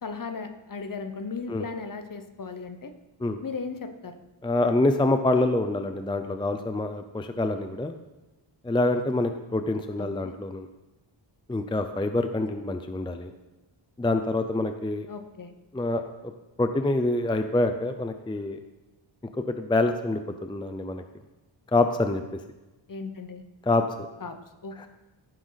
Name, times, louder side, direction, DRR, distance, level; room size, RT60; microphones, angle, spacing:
voice 1, 0.0-2.9 3.4-4.2 10.0-10.3 15.1-15.5 22.9-23.4 24.2-24.9, left 4 dB, 45° left, 8 dB, 1.1 m, -37 dB
voice 2, 4.4-7.9 8.6-10.7 11.5-13.3 14.0-15.1 15.7-16.3 16.6-18.6 19.3-21.0 21.7-22.4 23.7-23.8 24.8-24.9, left 2 dB, 10° left, 7 dB, 0.5 m, -26 dB
13.5 x 11.5 x 4.0 m, 1.1 s
wide cardioid pair, 170°, 46 cm